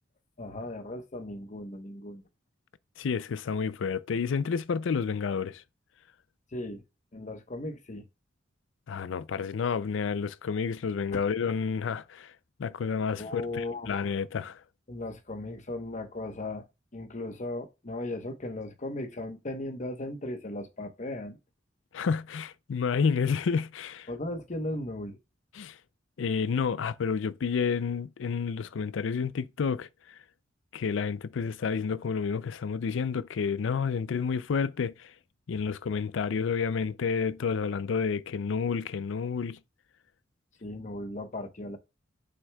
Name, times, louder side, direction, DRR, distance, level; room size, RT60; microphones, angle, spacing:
voice 1, 0.4-2.2 6.5-6.8 7.1-8.1 13.2-14.0 14.9-16.6 16.9-21.4 24.1-25.2 40.6-41.8, left 1 dB, 40° left, 1.0 m, -37 dB
voice 2, 3.0-5.6 8.9-12.3 12.6-14.6 21.9-24.1 25.5-25.8 26.2-29.9 30.7-35.1 35.5-39.6, left 5 dB, 80° left, 0.4 m, -30 dB
7.8 x 6.3 x 2.3 m
head